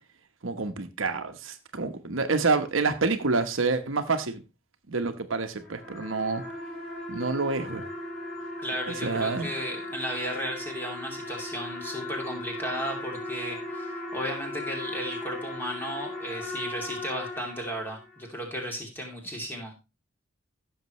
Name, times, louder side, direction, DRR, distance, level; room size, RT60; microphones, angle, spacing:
voice 1, 0.4-4.4 4.9-6.4 7.1-7.9 9.0-9.5, right 4 dB, 70° right, 1.1 m, -28 dB
sound 1, 5.4-18.2, left 1 dB, 45° left, 5.3 m, -37 dB
voice 2, 8.6-19.7, equal, 10° left, 2.7 m, -35 dB
15.5 x 6.5 x 3.1 m
head